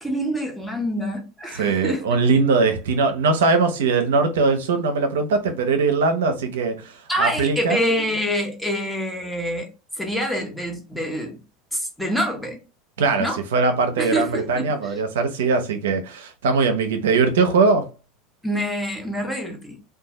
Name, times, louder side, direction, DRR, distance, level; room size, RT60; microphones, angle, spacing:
voice 1, 0.0-2.0 2.3-2.4 7.1-9.7 10.0-11.4 11.7-12.6 13.2-13.4 14.0-15.0 18.4-19.8, equal, ahead, 0.9 m, -26 dB
voice 2, 1.5-6.9 7.2-7.8 13.0-17.9, right 4 dB, 80° right, 0.6 m, -21 dB
2.6 x 2.3 x 3.0 m
hypercardioid pair, 90°, 0 cm